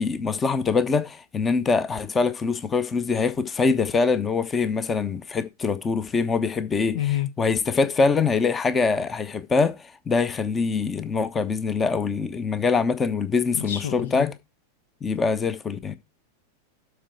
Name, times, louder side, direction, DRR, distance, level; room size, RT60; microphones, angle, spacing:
voice 1, 0.0-7.0 7.4-14.3 15.0-16.0, left 4 dB, 20° left, 1.1 m, -24 dB
voice 2, 6.9-7.3 13.5-14.3, left 12 dB, 60° left, 1.0 m, -28 dB
12.5 x 4.8 x 4.7 m
figure-of-eight pair, 90°, 0 cm